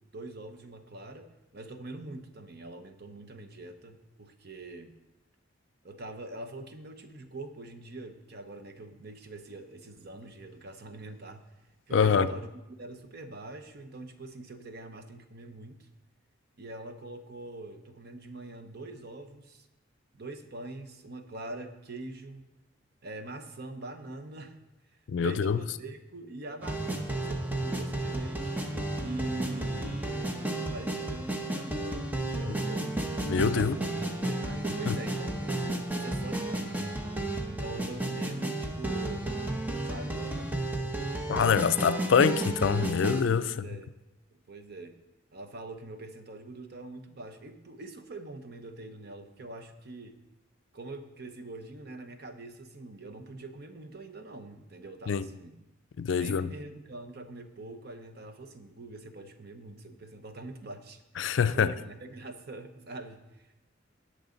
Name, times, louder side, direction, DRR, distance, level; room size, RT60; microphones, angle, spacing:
voice 1, 0.0-4.9 5.8-11.4 11.9-12.5 12.8-15.9 16.6-19.7 20.1-22.5 23.0-24.6 24.9-30.3 30.6-33.0 33.5-36.8 37.5-39.3 39.8-41.0 43.4-43.9 44.3-44.9 45.3-50.2 50.7-55.6 56.1-63.5, right 2 dB, 55° right, 0.9 m, -44 dB
voice 2, 11.9-12.3 25.1-25.6 33.2-33.8 34.9-35.0 41.3-43.5 55.1-55.2 56.0-56.5 61.2-61.7, left 6 dB, 65° left, 0.4 m, -25 dB
sound 1, 26.6-43.2, right 2 dB, 10° right, 0.9 m, -32 dB
18.5 x 6.4 x 3.9 m
head